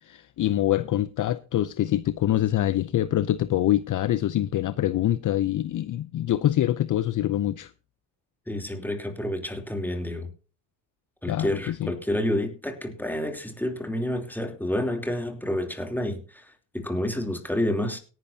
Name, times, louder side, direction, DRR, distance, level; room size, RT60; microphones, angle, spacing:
voice 1, 0.0-7.7 11.3-11.9, left 13 dB, 45° left, 0.6 m, -25 dB
voice 2, 8.5-10.3 11.2-16.5 16.7-18.0, left 1 dB, 5° left, 3.2 m, -29 dB
17.5 x 11.0 x 2.8 m
cardioid pair, 95°, 45 cm